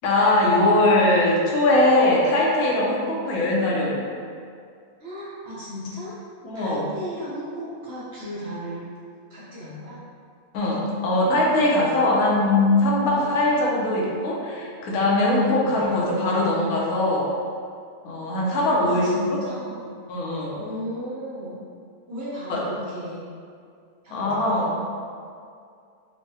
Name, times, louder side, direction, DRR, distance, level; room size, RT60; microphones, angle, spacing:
voice 1, 0.0-4.1 6.4-6.9 10.5-17.2 18.0-19.4 20.1-20.6 22.5-22.6 24.1-24.8, left 2 dB, 80° left, -4 dB, 1.1 m, -21 dB
voice 2, 5.0-6.1 6.5-8.8 9.3-10.0 13.1-13.3 15.6-15.8 18.8-20.0 20.6-21.6 22.1-23.2 24.0-24.4, equal, 55° right, -9 dB, 0.8 m, -35 dB
4.5 x 2.1 x 2.7 m, 2.3 s
omnidirectional pair, 1.5 m